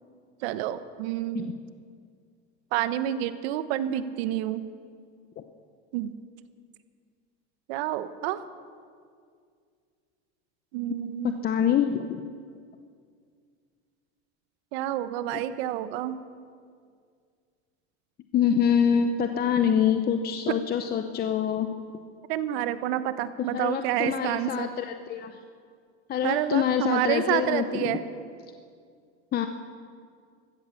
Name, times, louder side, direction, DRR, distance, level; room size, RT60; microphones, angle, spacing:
voice 1, 0.4-1.5 2.7-4.7 5.9-6.2 7.7-8.4 10.7-11.5 14.7-16.2 22.3-24.7 26.2-28.0, right 12 dB, 75° right, 12 dB, 1.0 m, -29 dB
voice 2, 11.2-12.2 18.3-21.7 23.5-25.4 26.1-28.0 29.3-29.5, left 8 dB, 30° left, 7 dB, 0.7 m, -25 dB
15.0 x 13.5 x 7.1 m, 2.2 s
supercardioid pair, 135°, 31 cm